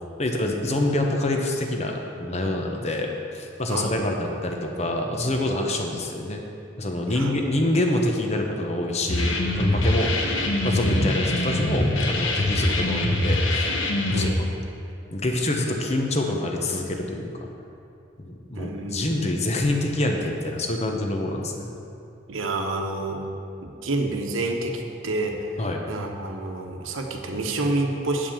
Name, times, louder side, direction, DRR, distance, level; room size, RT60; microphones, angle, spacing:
voice 1, 0.2-6.4 6.8-10.2 10.6-13.8 14.1-14.3 15.1-17.3 18.2-21.7 25.6-25.8, left 1 dB, 35° left, 2 dB, 0.9 m, -26 dB
voice 2, 7.1-7.4 14.1-14.3 18.5-19.0 22.3-23.3 23.6-28.3, right 2 dB, 90° right, 3 dB, 1.0 m, -28 dB
sound 1, 9.1-14.3, left 1 dB, 75° left, 1.0 m, -23 dB
9.2 x 5.1 x 7.3 m, 2.7 s
head